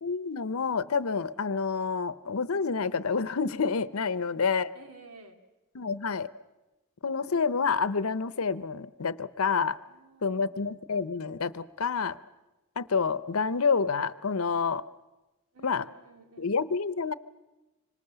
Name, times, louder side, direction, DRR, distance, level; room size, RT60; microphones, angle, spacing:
voice 1, 0.0-4.7 5.7-6.3 7.0-9.8 10.2-12.2 12.8-14.8 15.6-15.9 16.4-17.1, left 5 dB, 70° left, 16 dB, 0.7 m, -28 dB
voice 2, 4.7-5.4 7.1-7.4 9.8-10.6 15.5-16.5, right 3 dB, 85° right, 5 dB, 2.5 m, -53 dB
25.5 x 24.5 x 6.9 m, 1.0 s
head